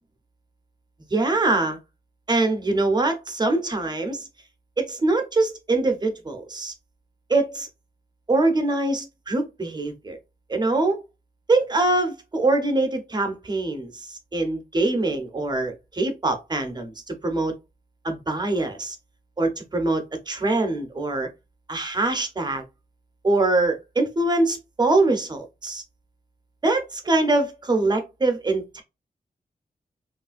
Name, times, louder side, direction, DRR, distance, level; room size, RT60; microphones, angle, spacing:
voice 1, 1.1-1.8 2.3-4.3 4.8-6.7 7.3-7.7 8.3-10.2 10.5-11.0 11.5-17.5 18.0-19.0 19.4-21.3 21.7-22.6 23.2-25.8 26.6-28.8, right 2 dB, 30° right, 0.7 m, -23 dB
3.1 x 2.4 x 2.3 m
wide cardioid pair, 125°, 15 cm